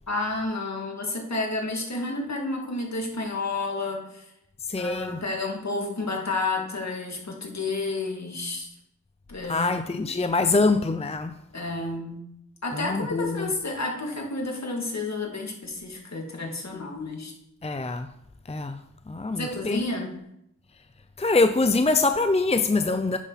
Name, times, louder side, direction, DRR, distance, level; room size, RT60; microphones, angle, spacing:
voice 1, 0.1-4.3 4.8-8.7 9.3-10.1 11.5-12.2 12.6-17.3 19.4-20.2, left 2 dB, 55° left, 2.5 m, -31 dB
voice 2, 4.7-5.2 9.5-11.3 12.7-13.5 17.6-18.1 18.5-18.8 19.1-19.8 21.2-23.2, left 3 dB, 20° left, 0.6 m, -24 dB
11.0 x 9.7 x 4.2 m
wide cardioid pair, 70°, 32 cm